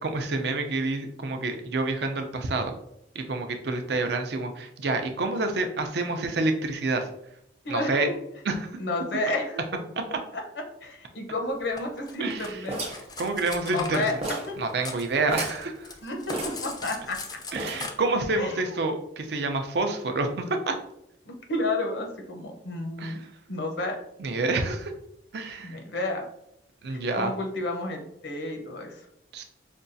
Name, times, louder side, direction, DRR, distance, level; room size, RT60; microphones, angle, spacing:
voice 1, 0.0-2.7 3.1-7.1 7.7-8.1 8.4-8.8 10.1-10.2 12.2-12.7 13.2-14.1 14.6-16.0 17.5-20.7 23.0-23.3 24.2-24.9 25.3-25.8 26.8-27.3 29.3-29.4, right 3 dB, 65° right, 5 dB, 0.5 m, -28 dB
voice 2, 7.6-8.1 8.8-9.6 10.3-10.4 10.8-12.8 13.6-14.1 14.5-14.6 16.0-17.4 18.4-18.8 21.3-23.2 23.5-24.0 25.6-26.2 26.9-29.0, left 2 dB, 75° left, 3 dB, 0.8 m, -31 dB
Cutlery silverware, 11.8-15.1 15.3-17.9, left 4 dB, 20° left, 0.4 m, -39 dB
sound 1, 12.7-13.9 14.2-14.6 14.9-15.0 15.2-15.7 16.3-17.1 17.6-18.0, right 1 dB, 35° right, 0.8 m, -34 dB
5.2 x 2.3 x 2.6 m, 0.77 s
head